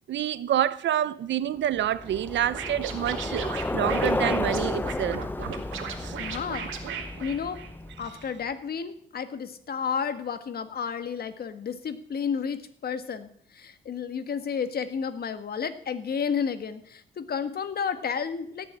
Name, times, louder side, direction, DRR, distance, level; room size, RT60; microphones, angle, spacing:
voice 1, 0.1-5.2 6.0-6.2, right 11 dB, 65° right, 0.8 m, -27 dB
Bicycle, 1.7-8.2, left 2 dB, 10° left, 0.6 m, -32 dB
Scratching (performance technique), 2.5-8.0, right 8 dB, 80° right, 2.2 m, -37 dB
voice 2, 6.2-6.7 7.2-7.6 8.0-18.7, left 6 dB, 50° left, 1.5 m, -31 dB
17.5 x 6.4 x 8.7 m
cardioid pair, 90°, 20 cm